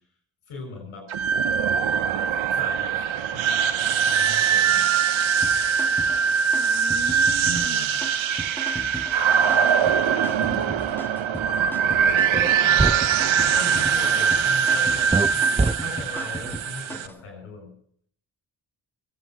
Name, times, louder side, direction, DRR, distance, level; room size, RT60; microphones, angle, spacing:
voice 1, 0.5-1.1 2.5-3.0 3.3-3.5 3.8-4.9 7.4-8.0 12.6-13.1 13.4-17.7, left 2 dB, 90° left, 2 dB, 6.3 m, -39 dB
sound 1, 1.1-17.1, right 7 dB, 75° right, 0.9 m, -22 dB
sound 2, 5.4-17.2, equal, 5° left, 1.4 m, -38 dB
voice 2, 6.5-7.9 9.9-11.1, right 3 dB, 35° right, 2 dB, 4.7 m, -38 dB
sound 3, 12.3-12.5 12.8-13.0 15.1-15.3 15.6-15.7, right 3 dB, 15° right, 0.8 m, -21 dB
21.5 x 9.1 x 5.9 m, 0.62 s
supercardioid pair, 40°, 48 cm